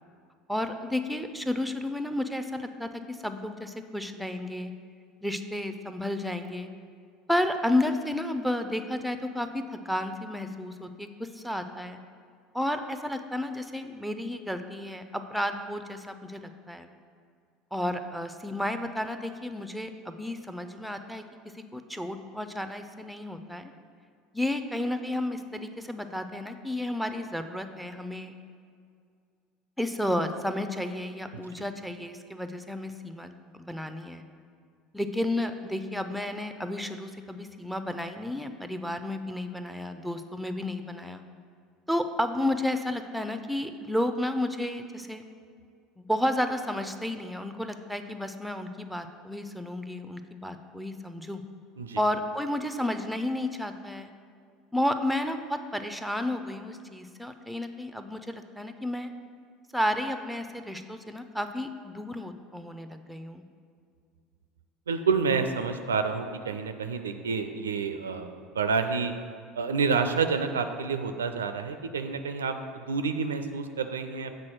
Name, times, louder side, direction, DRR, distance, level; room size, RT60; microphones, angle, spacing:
voice 1, 0.5-4.7 5.2-6.7 7.3-12.0 12.5-16.9 17.7-21.2 21.5-23.7 24.3-28.3 29.8-33.3 33.7-34.2 34.9-41.2 41.9-45.2 46.0-51.4 52.0-54.1 54.7-59.1 59.7-63.4, left 1 dB, ahead, 8 dB, 0.5 m, -32 dB
voice 2, 31.3-31.6 51.8-52.0 64.9-69.1 69.5-74.3, right 5 dB, 75° right, 8 dB, 0.4 m, -29 dB
7.4 x 3.9 x 6.3 m, 2.2 s
figure-of-eight pair, 70°, 0 cm